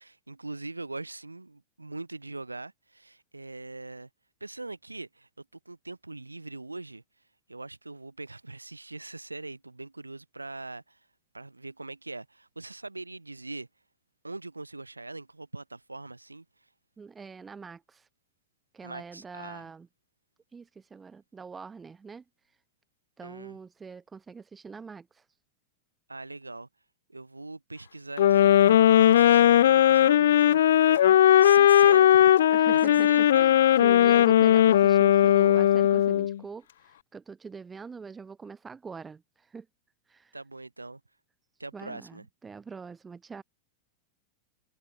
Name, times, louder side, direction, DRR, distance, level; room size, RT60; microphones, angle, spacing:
voice 1, 0.0-4.1 4.4-7.0 7.5-11.0 11.3-13.7 14.2-16.5 18.8-19.7 23.2-23.6 26.1-26.7 27.1-33.5 40.3-41.0 41.6-42.3, right 2 dB, 80° right, 3.7 m, -41 dB
voice 2, 17.0-18.1 18.7-19.9 20.5-22.6 23.2-25.4 32.5-39.7 40.1-40.4 41.5-43.4, right 5 dB, 15° right, 4.8 m, -44 dB
sound 1, 28.2-36.4, left 11 dB, 60° left, 0.4 m, -18 dB
figure-of-eight pair, 90°, 0 cm